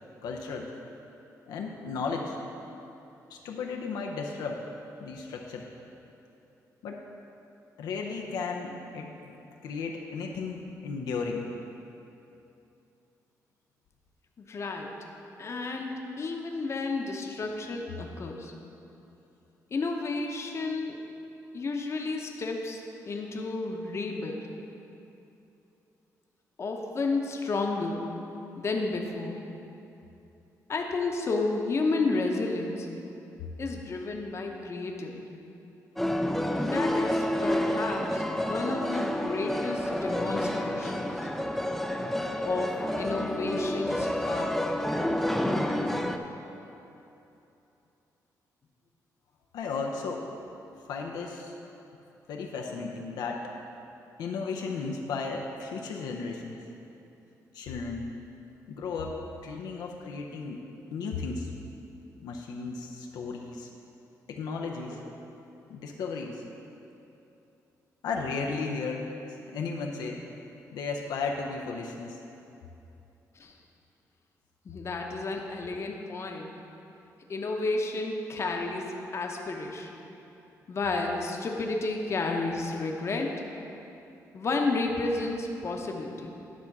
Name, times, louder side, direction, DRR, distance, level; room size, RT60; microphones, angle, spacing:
voice 1, 0.2-0.7 1.5-2.4 3.3-4.6 5.0-5.6 6.8-7.0 7.8-11.5 49.5-50.2 50.9-51.5 52.3-53.4 54.2-56.6 57.5-58.1 58.7-60.6 60.9-61.5 62.2-63.7 64.3-65.0 65.7-66.4 68.0-69.1 69.5-70.2 70.7-72.2, left 4 dB, 90° left, 0 dB, 0.6 m, -34 dB
voice 2, 14.4-14.9 15.4-18.5 19.7-21.0 21.5-24.5 26.6-28.0 28.6-29.4 30.7-32.9 33.6-35.4 36.6-41.1 42.4-44.6 64.9-65.1 73.4-73.6 74.6-76.5 77.3-79.9 80.7-83.4 84.3-86.3, left 3 dB, 45° left, 1 dB, 0.9 m, -32 dB
sound 1, 36.0-46.2, left 1 dB, 5° left, 0.4 m, -29 dB
10.5 x 3.6 x 5.9 m, 2.9 s
cardioid pair, 95°, 7 cm